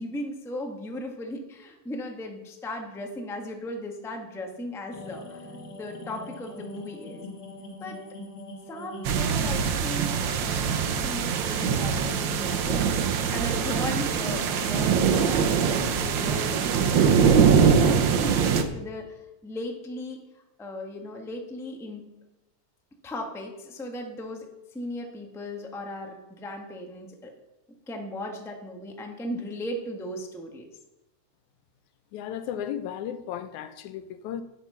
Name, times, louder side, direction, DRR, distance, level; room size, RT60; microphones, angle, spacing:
voice 1, 0.0-7.2 7.8-8.0 8.7-20.2 20.6-22.0 23.0-27.3 27.9-30.7, left 1 dB, ahead, 0.8 m, -36 dB
sound 1, 4.9-16.3, left 2 dB, 40° left, 1.7 m, -42 dB
sound 2, 9.1-18.6, right 6 dB, 80° right, 1.0 m, -23 dB
voice 2, 32.1-34.4, left 9 dB, 90° left, 2.2 m, -34 dB
12.0 x 8.8 x 5.7 m
omnidirectional pair, 3.3 m